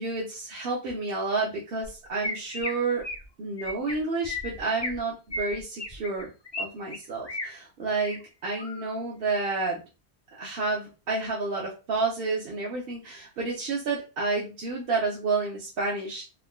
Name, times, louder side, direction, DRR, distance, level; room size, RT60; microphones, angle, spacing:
voice 1, 0.0-3.0 3.4-6.3 6.6-9.8 10.4-16.2, right 3 dB, 60° right, -3 dB, 0.9 m, -30 dB
Chirp tweet, 1.8-1.9 2.2-2.7 3.0-3.3 3.6-3.9 4.2-5.0 5.3-6.6 6.9-7.5 7.9-8.2 8.6-8.9, left 1 dB, 35° left, 0.4 m, -34 dB
3.6 x 2.2 x 2.2 m, 0.31 s
omnidirectional pair, 1.1 m